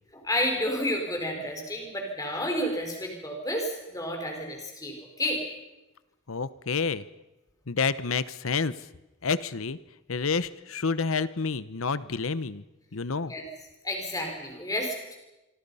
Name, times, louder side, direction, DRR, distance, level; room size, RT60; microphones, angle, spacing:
voice 1, 0.1-5.4 13.3-13.4 13.8-15.2, left 1 dB, 15° left, 2 dB, 4.8 m, -31 dB
voice 2, 6.3-7.0 7.7-8.9 9.2-9.8 10.1-12.6 12.9-13.3, left 5 dB, 75° left, 16 dB, 0.9 m, -29 dB
25.5 x 25.5 x 5.6 m, 1.0 s
head